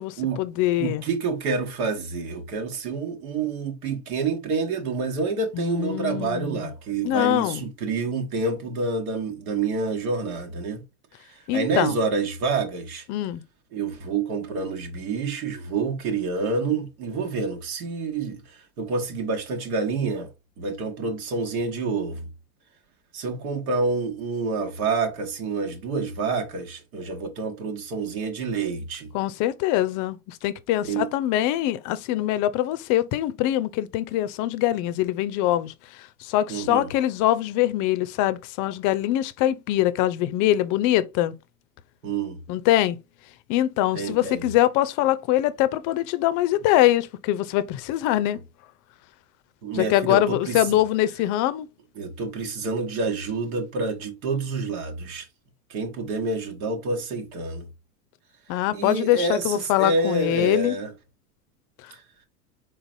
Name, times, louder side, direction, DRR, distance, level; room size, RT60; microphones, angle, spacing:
voice 1, 0.0-1.0 5.5-6.6 7.0-7.6 11.5-12.0 13.1-13.4 29.1-35.7 36.0-41.3 42.5-43.0 43.5-48.4 49.7-51.7 58.5-60.8, left 14 dB, 45° left, 0.6 m, -23 dB
voice 2, 0.8-10.8 11.3-13.1 13.7-20.3 20.6-22.3 23.1-29.1 30.9-31.1 36.5-36.9 42.0-42.4 43.9-44.5 49.6-50.8 52.0-55.3 55.7-57.7 58.7-60.9 61.9-62.0, right 4 dB, 70° right, 1.4 m, -28 dB
4.0 x 3.9 x 2.6 m
hypercardioid pair, 100°, 45 cm